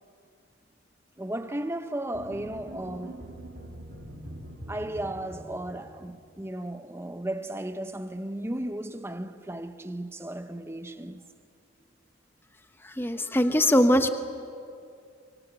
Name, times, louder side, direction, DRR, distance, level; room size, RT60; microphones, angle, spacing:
voice 1, 1.2-3.2 4.7-11.2, right 1 dB, 15° right, 0.9 m, -35 dB
sound 1, 2.1-6.4, right 1 dB, 70° right, 3.2 m, -43 dB
voice 2, 12.8-14.1, equal, 10° left, 1.0 m, -22 dB
25.0 x 24.0 x 8.3 m
head